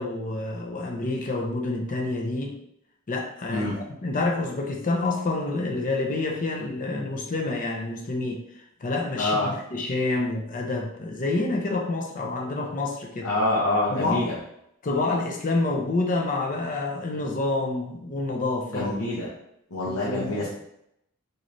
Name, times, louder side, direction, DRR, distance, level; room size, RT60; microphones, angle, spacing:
voice 1, 0.0-2.6 3.1-8.4 8.8-13.3 13.9-14.2 14.8-18.9 19.9-20.5, left 2 dB, 40° left, 1 dB, 0.5 m, -28 dB
voice 2, 9.2-9.5 13.2-14.4 18.7-19.3 19.7-20.5, left 2 dB, 80° left, -6 dB, 0.8 m, -26 dB
4.0 x 3.1 x 2.6 m, 0.77 s
head